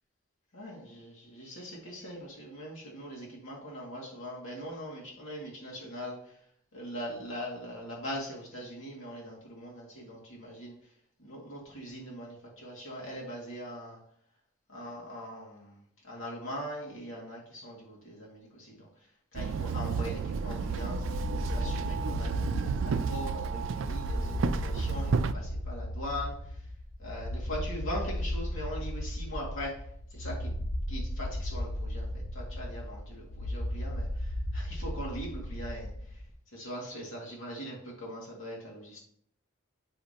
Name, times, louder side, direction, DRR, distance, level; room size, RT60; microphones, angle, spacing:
voice 1, 0.5-6.2 6.7-10.7 11.2-14.0 14.7-18.9 19.3-26.4 27.0-29.8 30.1-35.9 36.5-39.0, equal, 80° left, -3 dB, 2.2 m, -41 dB
Walk footsteps / Chatter / Hiss, 19.3-25.3, right 5 dB, 70° right, 0.4 m, -32 dB
sound 1, 20.8-36.3, left 1 dB, 35° left, 0.7 m, -35 dB
8.6 x 5.1 x 2.9 m, 0.68 s
head